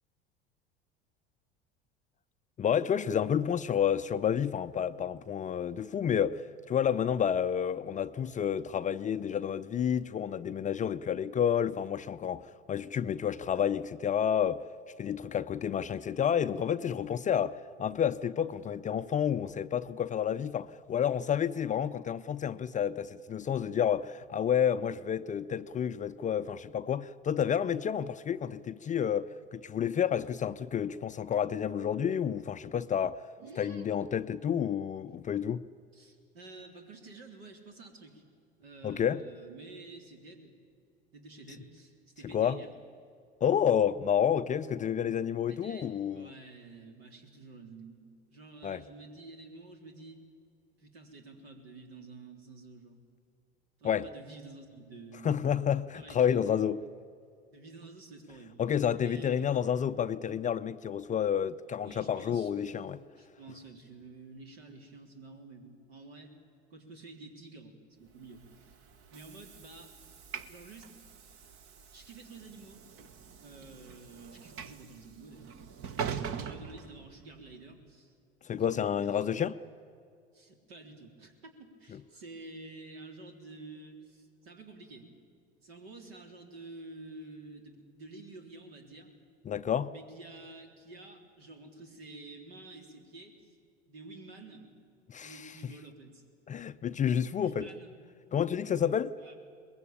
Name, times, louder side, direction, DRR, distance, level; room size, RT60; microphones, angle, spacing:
voice 1, 2.6-14.6 15.0-33.2 33.6-35.7 38.8-39.2 42.2-42.6 43.4-46.3 48.6-48.8 53.8-54.1 55.2-56.8 58.6-63.0 78.4-79.6 81.9-82.0 89.5-89.9 95.1-95.5 96.5-97.7 98.3-99.1, left 8 dB, 25° left, 0.5 m, -30 dB
voice 2, 33.4-33.9 35.9-38.2 38.6-40.5 41.1-42.7 45.4-50.2 50.8-53.0 53.8-55.3 55.9-56.6 57.5-58.6 59.0-59.5 61.8-62.9 63.2-66.3 66.7-68.8 69.1-69.9 70.5-70.9 71.9-72.8 73.4-75.6 75.9-78.2 78.6-79.3 80.3-85.1 85.6-89.1 89.9-93.6 93.9-94.7 95.2-96.2 97.4-97.9 99.2-99.4, right 3 dB, 70° right, 3.7 m, -50 dB
Train / Sliding door, 68.3-77.6, right 7 dB, 45° right, 1.4 m, -43 dB
23.0 x 21.5 x 8.9 m
figure-of-eight pair, 75°, 31 cm